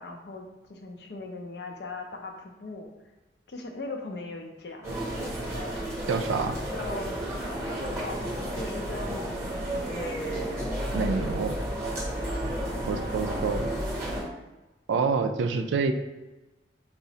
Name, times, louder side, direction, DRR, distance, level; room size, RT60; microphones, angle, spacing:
voice 1, 0.0-2.9 3.5-5.1 6.7-7.2 7.7-9.3 9.7-10.6 10.9-11.4 12.7-13.0, left 2 dB, 65° left, 3 dB, 0.5 m, -40 dB
sound 1, 4.8-14.2, right 1 dB, 15° right, 0.7 m, -32 dB
voice 2, 6.1-6.6 10.9-11.5 12.9-13.7 14.9-15.9, right 4 dB, 90° right, 7 dB, 0.3 m, -27 dB
4.8 x 2.0 x 2.7 m, 1.1 s
head